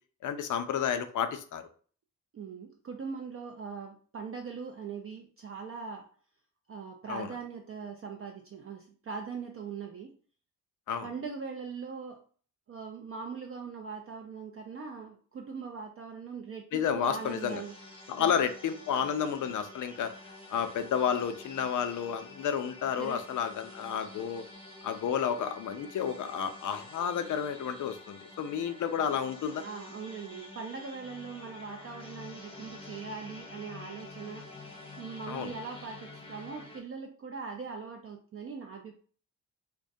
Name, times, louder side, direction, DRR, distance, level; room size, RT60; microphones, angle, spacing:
voice 1, 0.2-1.7 7.1-7.3 10.9-11.1 16.7-17.6 18.1-20.1 20.5-24.4 24.8-29.6 35.3-35.5, left 8 dB, 45° left, 9 dB, 0.4 m, -31 dB
voice 2, 2.3-6.1 6.7-10.1 11.0-12.2 12.7-17.7 18.2-18.4 23.0-23.2 29.5-34.5 35.0-39.0, right 5 dB, 30° right, 2 dB, 0.4 m, -41 dB
sound 1, 17.0-36.8, left 2 dB, 10° left, 0.8 m, -49 dB
2.2 x 2.2 x 2.6 m, 0.43 s
hypercardioid pair, 45°, 45 cm